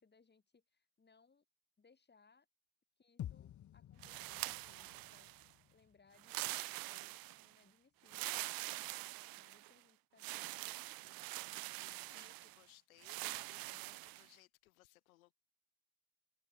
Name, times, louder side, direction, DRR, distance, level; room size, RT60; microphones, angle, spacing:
voice 1, 0.0-1.4 1.8-2.5 3.0-11.3, left 4 dB, 25° left, 7.7 m, -70 dB
sound 1, 3.2-7.5, left 11 dB, 40° left, 1.8 m, -52 dB
sound 2, 4.0-5.5 6.2-7.5 8.1-9.7 10.2-12.6 13.0-14.3, right 20 dB, 55° right, 1.2 m, -44 dB
voice 2, 11.7-15.3, left 19 dB, 75° left, 6.2 m, -65 dB
hypercardioid pair, 65°, 42 cm